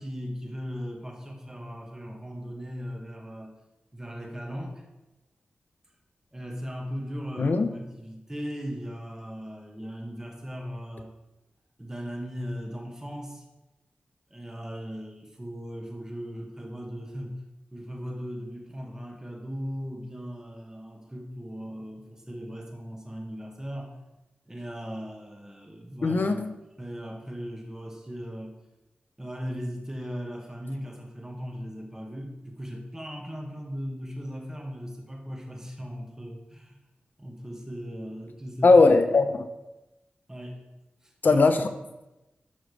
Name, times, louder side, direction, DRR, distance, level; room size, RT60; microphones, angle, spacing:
voice 1, 0.0-3.5 3.9-4.8 6.3-11.1 11.8-13.4 14.3-17.4 17.7-24.0 24.5-26.4 26.8-28.6 29.2-36.8 37.2-38.8 40.3-40.6 41.0-41.7, equal, 15° right, 0 dB, 1.8 m, -38 dB
voice 2, 7.4-7.7 26.0-26.5 38.6-39.5 41.2-41.7, left 3 dB, 60° left, 8 dB, 0.8 m, -19 dB
12.0 x 6.2 x 3.3 m, 1.0 s
cardioid pair, 65°, 4 cm